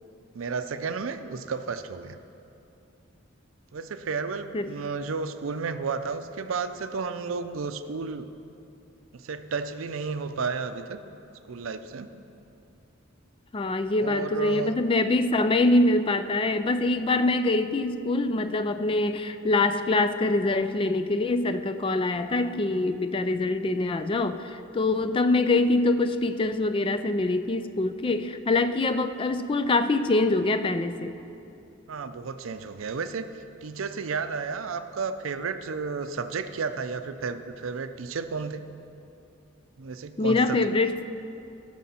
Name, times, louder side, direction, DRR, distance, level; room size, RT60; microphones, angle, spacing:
voice 1, 0.3-2.2 3.7-8.3 9.1-11.0 11.5-12.1 14.0-14.8 31.9-33.3 33.6-38.7 39.8-40.6 40.8-40.9, right 5 dB, 80° right, 10 dB, 0.5 m, -32 dB
voice 2, 13.5-31.2 40.2-41.0, left 2 dB, 25° left, 10 dB, 0.3 m, -24 dB
17.0 x 6.3 x 4.3 m, 2.8 s
head